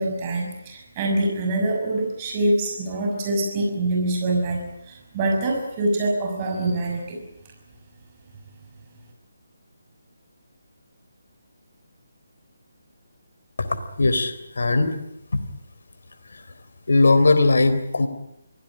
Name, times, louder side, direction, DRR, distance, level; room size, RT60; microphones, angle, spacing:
voice 1, 0.0-7.2, right 2 dB, 25° right, 1 dB, 6.2 m, -25 dB
voice 2, 13.6-15.0 15.3-15.4 16.3-16.5 16.9-18.1, left 3 dB, 65° left, 10 dB, 3.6 m, -19 dB
24.0 x 17.5 x 9.9 m, 0.85 s
figure-of-eight pair, 150°, 0 cm